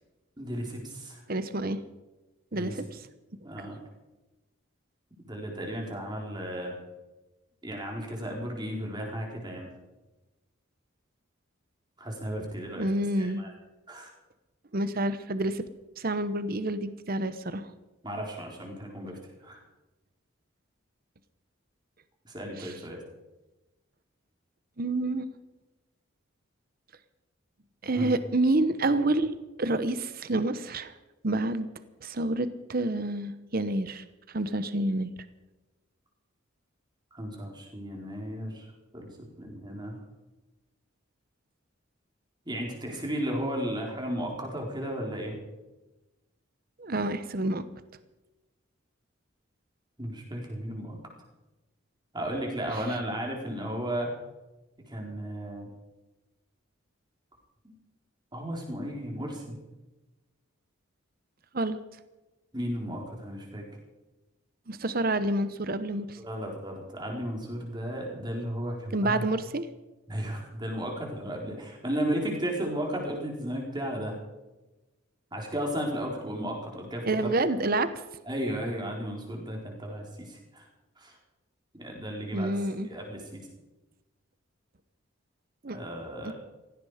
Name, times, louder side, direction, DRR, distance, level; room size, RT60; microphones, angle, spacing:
voice 1, 0.4-1.2 2.5-2.8 3.4-3.8 5.2-6.7 7.6-9.7 12.0-12.9 13.2-13.5 13.9-14.1 18.0-19.6 22.2-23.0 27.9-28.1 37.1-38.7 38.9-40.0 42.5-45.4 50.0-51.0 52.1-54.1 54.9-55.7 58.3-59.6 62.5-63.6 66.2-69.3 70.1-74.2 75.3-77.3 78.3-80.7 81.0-81.2 81.7-82.5 82.8-83.4 85.7-86.3, equal, 20° right, 0 dB, 4.2 m, -34 dB
voice 2, 1.3-1.8 2.5-3.0 12.8-13.4 14.7-15.6 16.0-17.7 22.6-22.7 24.8-25.2 27.8-30.9 31.2-31.7 32.0-35.1 46.8-47.6 52.7-52.8 61.5-61.8 64.7-66.2 68.9-69.7 77.0-77.9 82.3-82.9 85.6-85.8, right 2 dB, 45° right, 12 dB, 0.9 m, -28 dB
16.5 x 16.5 x 5.0 m, 1.1 s
head